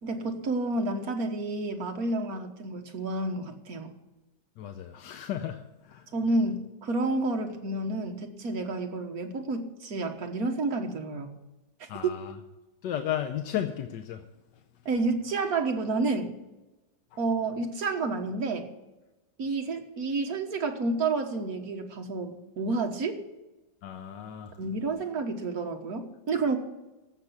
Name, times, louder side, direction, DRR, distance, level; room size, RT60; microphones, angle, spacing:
voice 1, 0.0-3.9 6.1-11.3 12.0-12.1 14.9-16.3 17.2-18.7 19.4-23.2 24.6-26.6, right 3 dB, 60° right, 3 dB, 1.9 m, -30 dB
voice 2, 4.6-6.1 11.9-12.4 12.8-14.2 23.8-24.6, left 10 dB, 90° left, 6 dB, 1.4 m, -34 dB
15.0 x 6.1 x 8.3 m, 1.0 s
omnidirectional pair, 1.8 m